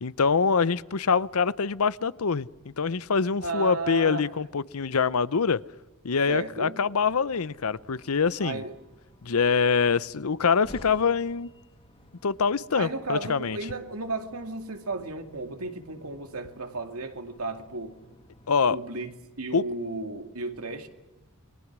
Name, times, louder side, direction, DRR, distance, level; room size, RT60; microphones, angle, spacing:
voice 1, 0.0-2.5 2.8-5.6 6.0-8.6 9.2-11.5 12.2-13.6 18.5-18.8 19.5-19.6, left 5 dB, 85° left, 0.7 m, -24 dB
voice 2, 3.4-4.3 6.3-6.8 8.4-8.7 12.7-18.0 18.7-20.9, right 3 dB, 85° right, 2.5 m, -34 dB
sound 1, 7.0-18.5, left 1 dB, 25° left, 2.1 m, -55 dB
29.0 x 22.0 x 6.2 m
head